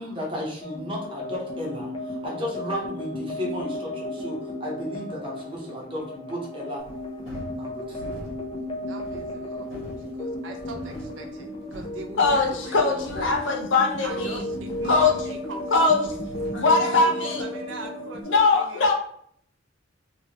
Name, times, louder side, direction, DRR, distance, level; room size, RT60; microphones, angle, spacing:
voice 1, 0.0-6.8 7.6-8.3, equal, 25° right, -3 dB, 1.0 m, -34 dB
sound 1, 0.6-18.2, left 1 dB, 30° left, 0.5 m, -34 dB
sound 2, 6.8-16.7, equal, 85° left, 1.3 m, -44 dB
voice 2, 8.8-13.4 14.0-15.9 16.5-16.6 16.9-18.9, right 3 dB, 70° right, 4 dB, 0.5 m, -41 dB
voice 3, 12.2-14.4 14.8-15.1 15.7-16.0 16.5-17.4 18.2-18.9, left 3 dB, 70° left, 2 dB, 0.7 m, -21 dB
2.9 x 2.8 x 2.9 m, 0.65 s
head